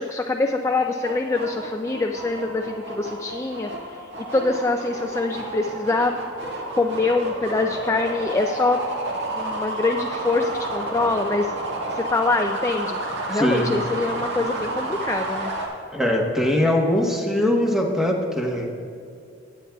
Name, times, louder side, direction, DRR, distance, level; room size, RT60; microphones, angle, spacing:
voice 1, 0.0-4.0 4.3-6.2 6.8-8.8 9.4-11.5 11.9-13.0 13.3-15.5, left 3 dB, 15° left, 4 dB, 0.3 m, -24 dB
sound 1, 0.7-15.7, right 2 dB, 70° right, 1.8 m, -31 dB
voice 2, 13.3-13.7 15.9-18.7, left 1 dB, ahead, -1 dB, 1.1 m, -21 dB
18.0 x 8.6 x 2.3 m, 2.4 s
head